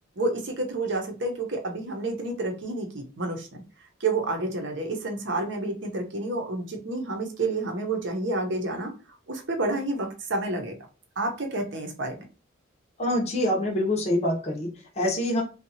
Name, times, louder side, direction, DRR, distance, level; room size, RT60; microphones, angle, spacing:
voice 1, 0.2-3.6 4.0-8.9 9.3-10.8 11.2-12.2, right 2 dB, 60° right, 3 dB, 0.7 m, -29 dB
voice 2, 13.0-15.4, left 1 dB, 30° left, -1 dB, 0.6 m, -25 dB
2.7 x 2.3 x 2.7 m, 0.34 s
head